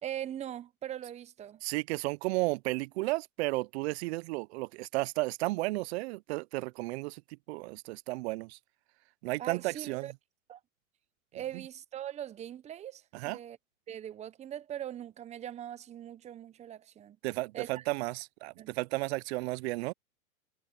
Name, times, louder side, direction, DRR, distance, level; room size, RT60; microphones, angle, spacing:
voice 1, 0.0-1.6 9.4-10.1 10.5-10.6 11.3-13.6 13.9-17.2 17.5-17.8 18.6-18.7, right 11 dB, 15° right, 0.7 m, -41 dB
voice 2, 1.6-7.2 7.5-8.6 9.2-10.1 13.1-13.4 17.2-19.9, right 22 dB, 50° right, 0.5 m, -33 dB
hypercardioid pair, 120°, 41 cm